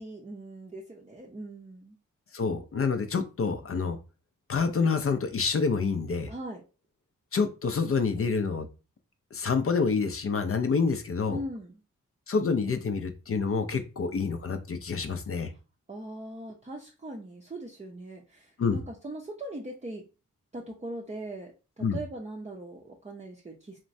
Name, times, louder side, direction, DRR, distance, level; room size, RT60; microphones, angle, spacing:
voice 1, 0.0-2.0 6.3-6.6 11.3-11.8 15.9-20.0 20.5-23.8, right 1 dB, 20° right, -2 dB, 0.6 m, -40 dB
voice 2, 2.3-4.0 4.5-6.3 7.3-8.7 9.3-11.4 12.3-15.5 18.6-18.8 21.8-22.0, left 5 dB, 45° left, 8 dB, 0.5 m, -27 dB
3.0 x 2.1 x 2.6 m, 0.31 s
cardioid pair, 45°, 33 cm